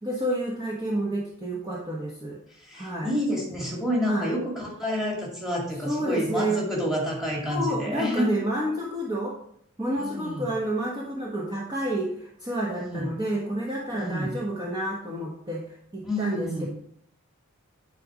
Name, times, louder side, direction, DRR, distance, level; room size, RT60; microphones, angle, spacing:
voice 1, 0.0-2.4 2.7-3.1 4.0-4.3 5.8-6.6 7.5-9.4 9.8-16.7, right 1 dB, 20° right, -3 dB, 1.2 m, -29 dB
voice 2, 2.6-8.3 10.0-10.4 12.7-13.1 13.9-14.4 16.0-16.7, equal, ahead, -2 dB, 2.4 m, -29 dB
10.0 x 4.1 x 4.9 m, 0.69 s
head